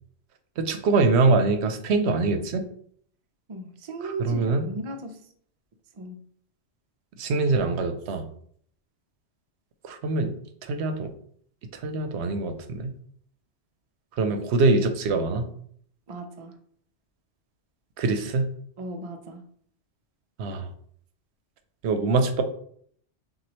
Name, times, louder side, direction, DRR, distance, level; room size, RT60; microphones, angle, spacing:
voice 1, 0.6-2.7 4.2-4.6 7.2-8.2 9.8-10.3 10.6-11.1 11.7-12.9 14.2-15.5 18.0-18.5 20.4-20.7 21.8-22.4, right 3 dB, 90° right, 7 dB, 0.9 m, -24 dB
voice 2, 3.5-5.3 5.9-6.2 16.1-16.6 18.8-19.4, right 2 dB, 45° right, 5 dB, 0.4 m, -36 dB
6.1 x 2.4 x 2.9 m, 0.62 s
omnidirectional pair, 1.1 m